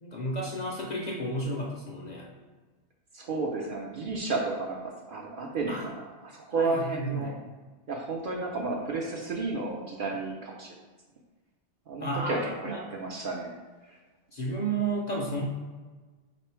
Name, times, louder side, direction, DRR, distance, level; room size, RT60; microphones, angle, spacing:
voice 1, 0.0-2.3 5.7-5.9 6.6-7.3 12.0-12.8 14.3-15.4, right 2 dB, 50° left, -3 dB, 0.6 m, -32 dB
voice 2, 3.1-7.3 7.9-10.7 11.9-13.6 13.9-14.0, right 3 dB, 60° right, -1 dB, 0.6 m, -32 dB
3.6 x 3.0 x 4.4 m, 1.3 s
omnidirectional pair, 1.2 m